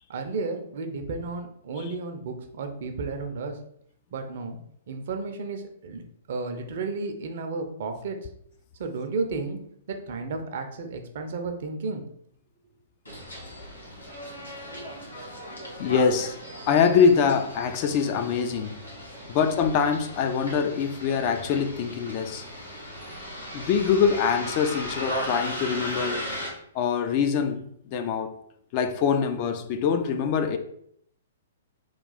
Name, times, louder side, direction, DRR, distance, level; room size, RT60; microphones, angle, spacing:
voice 1, 0.1-3.6 4.1-4.6 4.9-8.3 8.8-9.6 9.9-12.0, right 3 dB, 50° right, 0.5 m, -33 dB
Bus, 13.1-26.5, equal, 85° left, 1.2 m, -37 dB
voice 2, 15.8-16.4 16.7-18.8 19.3-22.4 23.5-26.2 26.7-27.6 27.9-28.3 28.7-30.6, left 6 dB, 35° left, 0.3 m, -24 dB
3.1 x 2.3 x 3.9 m
figure-of-eight pair, 115°, 0 cm